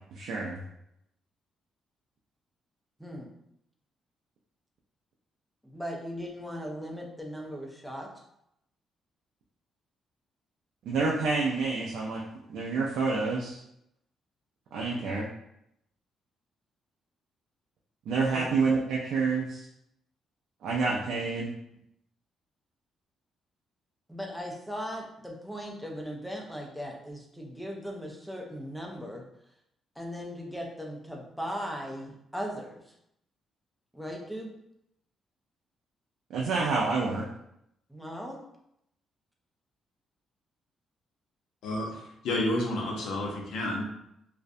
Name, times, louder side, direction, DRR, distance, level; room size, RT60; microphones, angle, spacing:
voice 1, 0.1-0.6 10.8-12.2 12.5-13.6 14.7-15.3 18.1-19.7 20.6-21.5 36.3-37.3, right 4 dB, 80° right, -3 dB, 0.3 m, -28 dB
voice 2, 5.6-8.1 18.3-18.4 24.1-29.2 30.0-32.8 33.9-34.5 37.9-38.4, equal, ahead, 0 dB, 0.4 m, -38 dB
voice 3, 41.6-43.8, left 1 dB, 90° left, -1 dB, 0.6 m, -30 dB
2.4 x 2.1 x 2.5 m, 0.78 s
cardioid pair, 160°, 0 cm